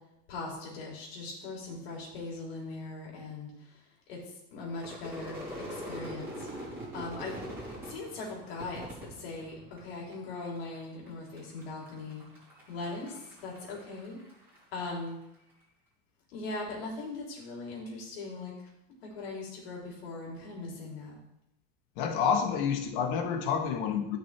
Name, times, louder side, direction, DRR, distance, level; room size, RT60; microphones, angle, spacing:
voice 1, 0.3-3.8 4.1-7.4 7.8-12.2 12.7-14.2 14.7-15.2 16.3-18.7 19.0-21.1, left 3 dB, 85° left, -3 dB, 3.6 m, -40 dB
Crowd / Fireworks, 4.7-10.1 10.4-11.1 11.4-14.9, equal, 5° right, 3.0 m, -43 dB
voice 2, 22.0-24.2, left 7 dB, 55° left, 6 dB, 1.3 m, -28 dB
12.5 x 6.2 x 3.4 m, 0.84 s
supercardioid pair, 175°, 29 cm